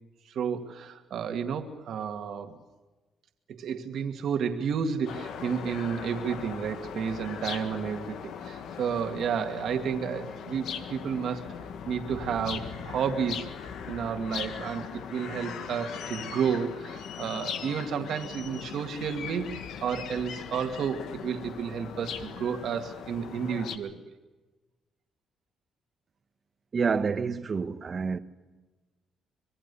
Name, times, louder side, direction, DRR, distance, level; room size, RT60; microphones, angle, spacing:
voice 1, 0.3-2.6 3.5-11.5 11.9-13.5 13.9-19.5 19.8-24.1, right 7 dB, 70° right, 2.1 m, -31 dB
sound 1, 5.1-23.8, left 7 dB, 80° left, 1.8 m, -39 dB
voice 2, 26.7-28.2, right 5 dB, 40° right, 1.4 m, -28 dB
25.5 x 22.0 x 7.0 m
cardioid pair, 90°, 0 cm